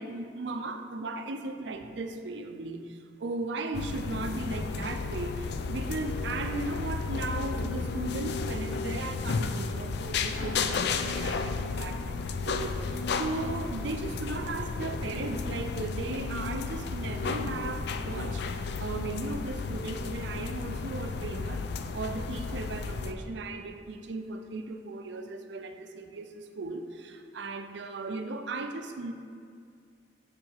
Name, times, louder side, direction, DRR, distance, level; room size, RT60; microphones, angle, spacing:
voice 1, 0.0-21.7 21.9-29.1, right 3 dB, 70° right, 7 dB, 0.5 m, -37 dB
sound 1, 3.7-23.1, left 4 dB, 65° left, 0.4 m, -33 dB
7.7 x 3.7 x 4.6 m, 2.3 s
head